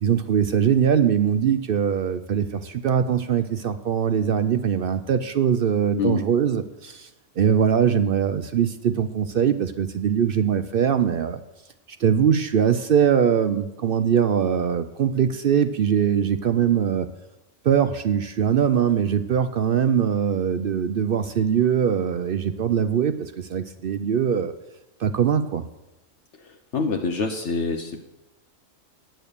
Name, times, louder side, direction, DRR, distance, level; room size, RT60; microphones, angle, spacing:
voice 1, 0.0-7.1 7.4-11.4 12.0-17.1 17.6-24.5 25.0-25.6, right 8 dB, 60° right, 11 dB, 0.6 m, -22 dB
voice 2, 26.7-28.0, left 4 dB, 65° left, 4 dB, 1.1 m, -25 dB
9.0 x 8.9 x 6.7 m, 0.98 s
omnidirectional pair, 1.4 m